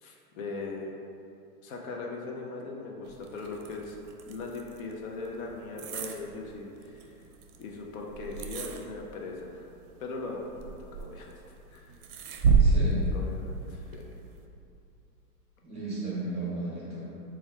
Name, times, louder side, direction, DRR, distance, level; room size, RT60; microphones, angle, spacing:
voice 1, 0.0-1.0 1.6-4.0 4.3-7.2 7.6-9.7 10.0-11.4 11.7-12.0 13.1-14.1, left 3 dB, 60° left, 0 dB, 0.6 m, -39 dB
sound 1, 3.0-14.4, right 4 dB, 65° right, 0.5 m, -31 dB
voice 2, 12.6-13.0 15.6-17.0, right 2 dB, 15° right, -8 dB, 0.7 m, -34 dB
3.2 x 2.3 x 4.3 m, 2.6 s
hypercardioid pair, 140°, 49 cm